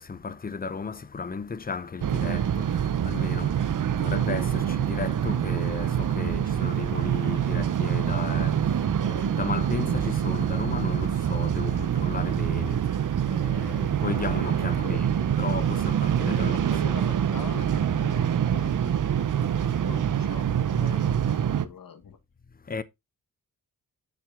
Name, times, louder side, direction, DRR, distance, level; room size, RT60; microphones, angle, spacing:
voice 1, 0.0-16.7 22.7-22.8, left 5 dB, 25° left, 0.6 m, -35 dB
sound 1, 2.0-21.7, right 9 dB, 60° right, 0.7 m, -25 dB
voice 2, 14.6-15.5 16.3-18.9 19.6-22.2, left 6 dB, 65° left, 1.5 m, -43 dB
7.0 x 5.9 x 3.7 m
wide cardioid pair, 145°, 36 cm